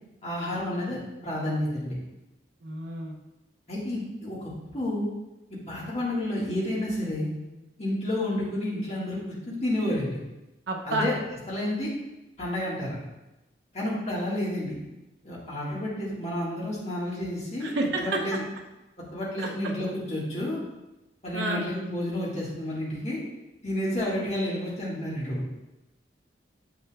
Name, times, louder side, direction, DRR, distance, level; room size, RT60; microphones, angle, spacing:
voice 1, 0.2-1.9 3.7-5.1 5.7-7.3 7.8-9.2 9.5-10.2 10.8-11.1 11.5-11.9 12.4-13.0 13.7-14.7 15.2-17.7 18.0-18.4 19.1-20.6 21.2-23.2 23.6-25.4, left 1 dB, 35° left, -6 dB, 1.7 m, -30 dB
voice 2, 2.6-3.2 10.7-11.1 17.6-18.2 19.4-19.5 21.3-21.7, right 2 dB, 75° right, 0 dB, 0.7 m, -29 dB
7.1 x 6.0 x 2.4 m, 0.99 s
head